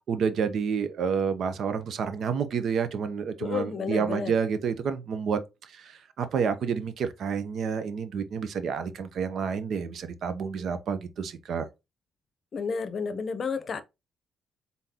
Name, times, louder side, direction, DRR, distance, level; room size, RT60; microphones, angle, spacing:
voice 1, 0.1-11.7, right 6 dB, 65° right, 0.7 m, -29 dB
voice 2, 3.4-4.3 12.5-13.8, left 5 dB, 50° left, 0.7 m, -31 dB
4.0 x 3.8 x 2.8 m
cardioid pair, 90°, 0 cm